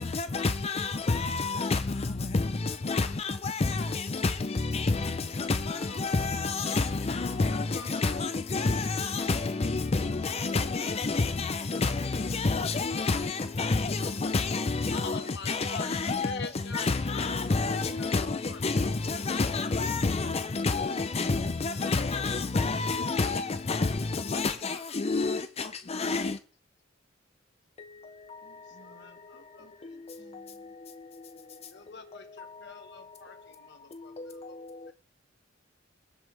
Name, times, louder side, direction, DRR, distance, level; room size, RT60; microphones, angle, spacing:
voice 1, 0.1-1.8 2.3-2.4 2.9-4.3 4.7-5.1 5.5-7.6 7.9-15.2 15.5-16.3 16.7-25.4 25.9-26.2, left 3 dB, 30° left, 0.5 m, -28 dB
voice 2, 1.4-2.1 2.7-3.1 5.0-5.1 5.4-6.1 7.5-8.3 10.1-11.2 14.9-19.0 24.7-25.5 28.4-30.3 31.7-34.6 34.9-35.0, left 4 dB, 60° left, 1.5 m, -47 dB
voice 3, 28.4-30.7, right 1 dB, 40° right, 3.3 m, -61 dB
21.5 x 8.0 x 3.3 m
head